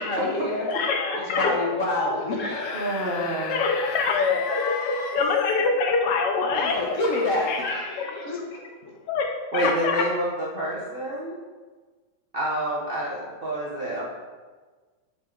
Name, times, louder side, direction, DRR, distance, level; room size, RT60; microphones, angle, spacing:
voice 1, 0.0-0.7 1.1-3.3 4.4-5.1 6.5-8.7, left 2 dB, 50° left, -2 dB, 1.1 m, -28 dB
voice 2, 0.7-1.5 3.2-6.8 7.5-7.6 9.1-10.0, left 4 dB, 70° left, 3 dB, 1.2 m, -25 dB
Screaming / Screech, 2.3-5.7 6.6-7.7, left 7 dB, 90° left, 1.4 m, -37 dB
voice 3, 2.7-3.6 9.5-11.3 12.3-14.0, right 1 dB, 45° right, -6 dB, 0.8 m, -28 dB
7.4 x 4.2 x 3.8 m, 1.4 s
omnidirectional pair, 2.0 m